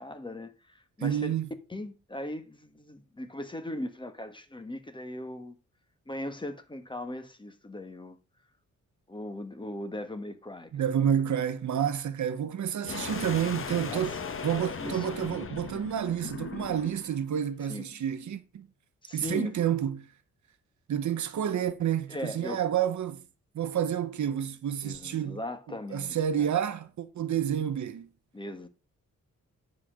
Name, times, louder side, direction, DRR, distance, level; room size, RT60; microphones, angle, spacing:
voice 1, 0.0-1.3 1.7-5.5 6.1-8.2 9.1-10.8 13.9-14.2 14.8-15.1 17.7-18.0 19.0-19.6 22.1-22.6 24.8-26.5 28.3-28.7, left 1 dB, 15° left, 1.4 m, -39 dB
voice 2, 1.0-1.5 10.7-14.2 14.4-18.7 19.1-20.1 20.9-23.2 23.5-25.4 25.9-28.1, right 9 dB, 75° right, 1.1 m, -29 dB
sound 1, 12.8-17.2, left 5 dB, 45° left, 1.3 m, -37 dB
11.0 x 4.2 x 6.4 m
wide cardioid pair, 115°, 30 cm